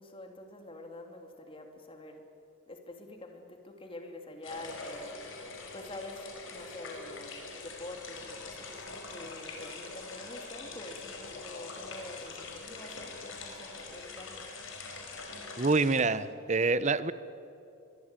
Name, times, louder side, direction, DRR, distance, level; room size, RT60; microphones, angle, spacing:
voice 1, 0.0-2.2 2.7-14.4, left 1 dB, 25° left, 4 dB, 2.8 m, -46 dB
sound 1, 4.4-16.0, left 3 dB, 70° left, 5.0 m, -44 dB
voice 2, 15.6-17.1, right 3 dB, 35° right, 15 dB, 0.8 m, -26 dB
24.0 x 23.0 x 9.0 m, 2.7 s
head